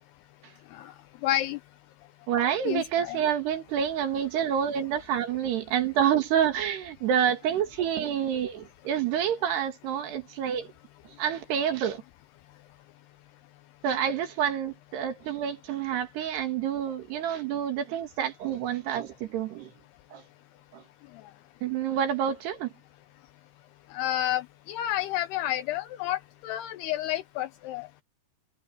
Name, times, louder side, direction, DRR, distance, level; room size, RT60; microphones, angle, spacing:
voice 1, 1.2-1.6 2.7-3.2 23.9-27.9, left 13 dB, 85° left, 2.4 m, -30 dB
voice 2, 2.3-10.7 11.2-12.0 13.8-19.7 20.1-20.2 20.7-20.8 21.6-22.7, right 9 dB, 70° right, 3.9 m, -28 dB
omnidirectional pair, 5.2 m